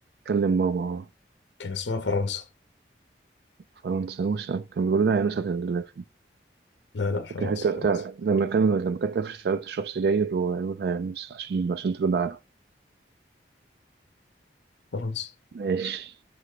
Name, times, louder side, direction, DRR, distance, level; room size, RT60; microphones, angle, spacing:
voice 1, 0.3-1.1 3.8-6.0 7.4-12.4 15.6-16.1, right 5 dB, 60° right, 0.3 m, -26 dB
voice 2, 1.6-2.5 6.9-7.7 14.9-15.3, left 4 dB, 85° left, 0.7 m, -29 dB
6.2 x 3.3 x 4.8 m
head